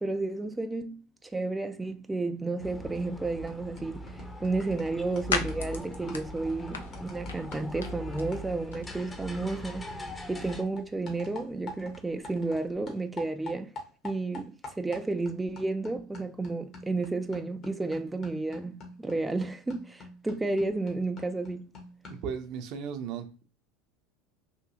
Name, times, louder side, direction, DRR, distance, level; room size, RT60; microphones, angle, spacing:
voice 1, 0.0-13.7 14.0-21.7, right 3 dB, 10° right, 0.3 m, -32 dB
sound 1, 2.6-10.6, left 1 dB, 15° left, 0.7 m, -42 dB
sound 2, 3.0-3.2 3.5-12.6 12.9-22.4, left 2 dB, 50° left, 1.3 m, -46 dB
sound 3, 4.1-12.7, left 5 dB, 85° left, 0.5 m, -41 dB
voice 2, 22.1-23.4, right 7 dB, 60° right, 0.6 m, -36 dB
3.5 x 2.6 x 2.7 m
hypercardioid pair, 75°, 0 cm